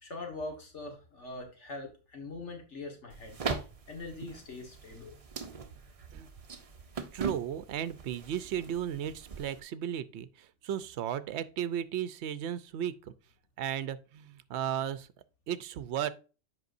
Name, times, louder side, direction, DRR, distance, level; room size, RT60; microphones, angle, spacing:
voice 1, 0.0-5.2, left 2 dB, 70° left, 1.8 m, -43 dB
sound 1, 3.1-9.6, right 5 dB, 35° right, 0.7 m, -41 dB
voice 2, 7.1-13.1 13.6-15.1 15.5-16.1, right 10 dB, 70° right, 0.9 m, -35 dB
7.9 x 5.4 x 2.5 m
omnidirectional pair, 1.2 m